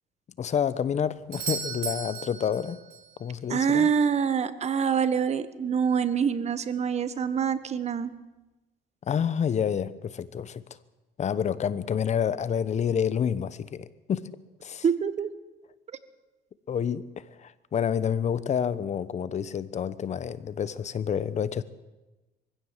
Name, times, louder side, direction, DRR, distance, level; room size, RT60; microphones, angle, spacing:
voice 1, 0.4-2.8 3.2-3.9 9.0-10.6 11.2-14.3 14.6-14.8 16.7-21.6, left 8 dB, 45° left, 16 dB, 1.0 m, -28 dB
Doorbell, 1.3-3.2 7.2-7.3, right 6 dB, 60° right, 3.8 m, -35 dB
voice 2, 3.5-8.1 14.8-15.3, right 7 dB, 40° right, 13 dB, 1.3 m, -25 dB
23.0 x 16.0 x 7.4 m, 1.1 s
cardioid pair, 110°, 17 cm